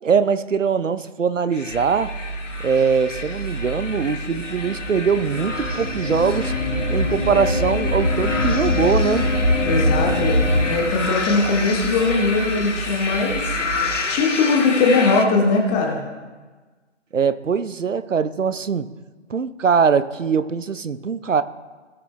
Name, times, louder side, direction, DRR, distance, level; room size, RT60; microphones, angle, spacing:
voice 1, 0.0-2.1 2.6-6.5 6.9-9.3 17.1-18.9 19.3-21.4, right 6 dB, 85° right, 13 dB, 0.7 m, -21 dB
sound 1, 1.5-15.2, left 3 dB, 80° left, 1.6 m, -30 dB
sound 2, 1.7-14.0, right 5 dB, 60° right, 1.6 m, -35 dB
sound 3, 4.7-10.7, left 1 dB, 5° right, 0.5 m, -22 dB
voice 2, 9.6-10.4 10.7-13.6 14.1-16.0, left 3 dB, 15° left, 0 dB, 1.0 m, -20 dB
17.0 x 6.0 x 3.2 m, 1.3 s
figure-of-eight pair, 140°, 37 cm